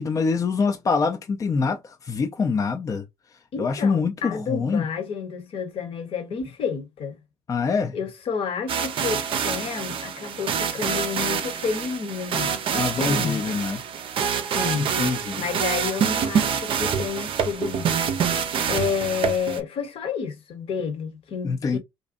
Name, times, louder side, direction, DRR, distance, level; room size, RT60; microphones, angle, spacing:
voice 1, 0.0-3.0 3.6-4.9 7.5-8.0 12.8-13.8 14.8-15.4 21.4-21.8, left 5 dB, 30° left, 0.4 m, -25 dB
voice 2, 3.5-7.2 7.9-13.4 14.5-15.0 15.4-17.9 18.7-21.8, left 6 dB, 50° left, 0.9 m, -30 dB
sound 1, 8.7-19.6, right 7 dB, 50° right, 0.5 m, -26 dB
2.5 x 2.2 x 2.5 m
hypercardioid pair, 60°, 12 cm